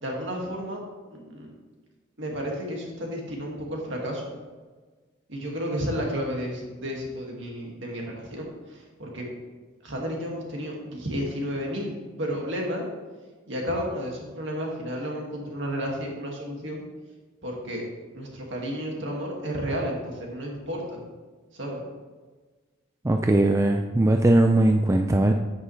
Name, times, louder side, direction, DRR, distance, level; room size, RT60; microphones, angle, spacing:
voice 1, 0.0-0.8 1.1-1.5 2.2-4.2 5.3-9.2 9.8-11.9 12.2-12.8 13.5-16.8 17.4-17.9 18.1-21.0 21.5-21.8, equal, 60° right, -1 dB, 2.1 m, -32 dB
voice 2, 23.0-25.3, right 1 dB, 15° right, 4 dB, 0.3 m, -20 dB
9.5 x 8.2 x 3.3 m, 1.4 s
head